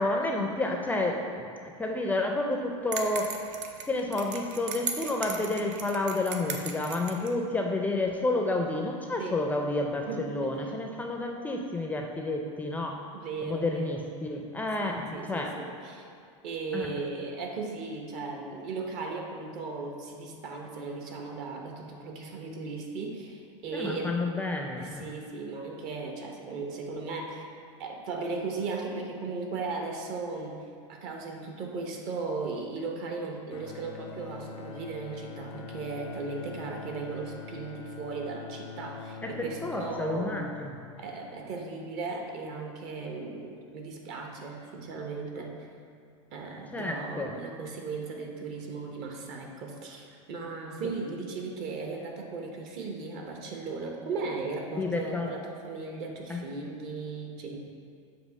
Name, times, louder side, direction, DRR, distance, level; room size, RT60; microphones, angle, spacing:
voice 1, 0.0-1.5 1.8-3.3 3.9-13.0 13.4-15.5 16.7-16.9 23.7-25.1 39.2-40.8 46.7-47.3 50.8-50.9 54.8-55.3 56.3-56.4, left 2 dB, 10° left, 1 dB, 0.4 m, -30 dB
sound 1, 2.9-7.3, right 6 dB, 75° right, 0.7 m, -37 dB
voice 2, 10.1-10.5 13.1-14.0 14.8-16.0 16.4-24.2 24.8-27.5 27.8-40.4 41.0-45.5 46.3-57.6, right 4 dB, 55° right, 1 dB, 1.1 m, -37 dB
Bowed string instrument, 33.5-41.7, left 5 dB, 85° left, 0.4 m, -44 dB
7.5 x 2.9 x 5.3 m, 2.4 s
supercardioid pair, 120°, 16 cm